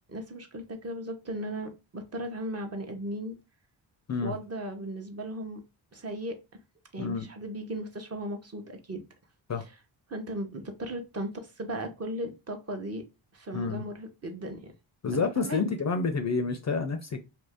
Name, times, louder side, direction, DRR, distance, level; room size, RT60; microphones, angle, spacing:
voice 1, 0.1-3.3 4.2-5.6 5.9-6.3 6.9-9.0 10.1-13.0 13.3-14.7 15.1-15.6, right 1 dB, 30° right, 0.8 m, -36 dB
voice 2, 13.5-13.8 15.0-17.2, left 4 dB, 35° left, 0.5 m, -29 dB
2.8 x 2.6 x 3.4 m
cardioid pair, 110°, 48 cm